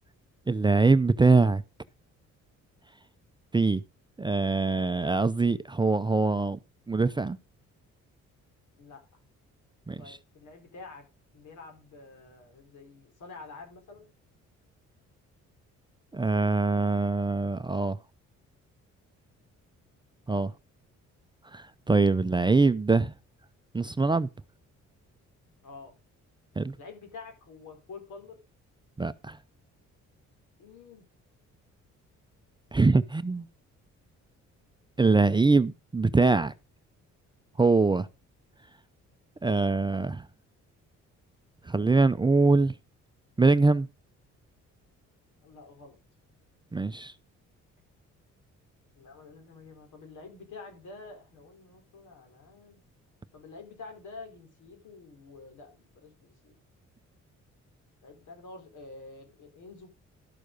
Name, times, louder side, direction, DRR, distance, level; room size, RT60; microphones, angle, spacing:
voice 1, 0.5-1.6 3.5-3.8 4.2-6.6 6.9-7.4 9.9-10.2 16.1-18.0 20.3-20.5 21.5-23.1 23.7-24.3 26.6-26.8 29.0-29.4 32.7-33.5 35.0-36.5 37.6-38.1 39.4-40.2 41.7-42.7 43.4-43.9 46.7-47.1, right 3 dB, 15° right, 0.5 m, -23 dB
voice 2, 10.0-11.0 11.3-14.1 20.3-20.5 25.6-25.9 26.8-28.4 30.6-31.1 33.1-33.2 45.4-46.0 49.0-52.8 53.3-56.5 58.0-59.9, left 4 dB, 75° left, 4.4 m, -48 dB
12.5 x 6.4 x 5.2 m
cardioid pair, 90°, 30 cm